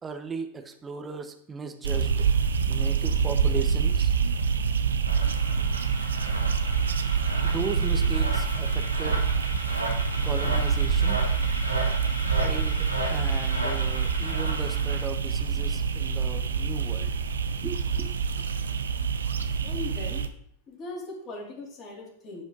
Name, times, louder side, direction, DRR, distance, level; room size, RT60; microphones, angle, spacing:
voice 1, 0.0-2.3 2.7-4.1 7.4-9.3 10.2-11.2 12.4-17.1 17.6-18.1, right 5 dB, 20° right, 7 dB, 1.0 m, -37 dB
sound 1, 1.8-20.3, right 6 dB, 70° right, 0.7 m, -26 dB
sound 2, 5.1-15.1, equal, 85° right, 1.9 m, -35 dB
voice 2, 19.6-20.2 20.7-22.4, left 3 dB, 30° left, -2 dB, 3.5 m, -39 dB
11.5 x 5.0 x 4.0 m, 0.66 s
figure-of-eight pair, 90°, 0 cm